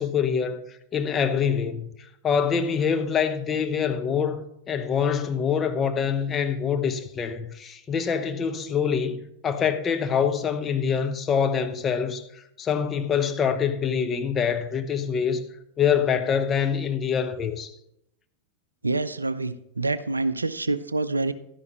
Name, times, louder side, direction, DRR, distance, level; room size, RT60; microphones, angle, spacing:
voice 1, 0.0-1.9 2.2-15.4 15.8-17.7, left 7 dB, 25° left, 0.9 m, -25 dB
voice 2, 18.8-21.3, right 2 dB, 80° right, 0.4 m, -26 dB
12.0 x 11.0 x 3.0 m
figure-of-eight pair, 90°, 0 cm